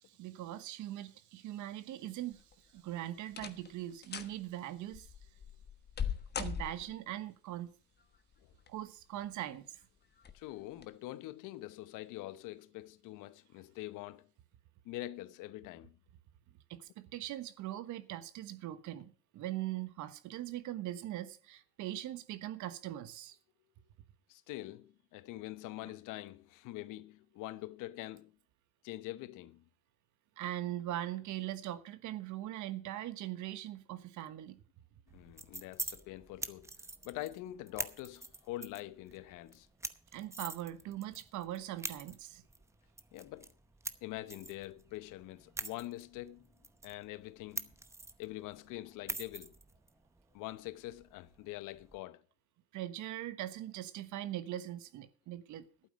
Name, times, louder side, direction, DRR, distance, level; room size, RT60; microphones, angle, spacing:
voice 1, 0.2-2.4 2.7-5.1 6.4-7.7 8.7-9.8 16.7-23.4 30.4-34.6 40.1-42.4 52.7-55.7, right 13 dB, 55° right, 1.3 m, -41 dB
sound 1, 2.3-2.8 3.3-3.7 4.0-4.4 4.9-7.1 8.3-8.9 9.4-9.5 10.2-10.4 10.8-10.9, left 7 dB, 30° left, 1.3 m, -40 dB
voice 2, 10.3-14.3 14.8-16.0 24.3-28.4 28.8-29.6 35.1-36.7 37.0-39.7 43.1-43.5 44.0-46.5 46.8-47.7 48.2-49.5 50.3-52.2, left 16 dB, 60° left, 1.0 m, -44 dB
sound 2, 35.1-52.0, right 2 dB, 10° right, 0.8 m, -46 dB
11.5 x 9.1 x 6.3 m
supercardioid pair, 115°, 35 cm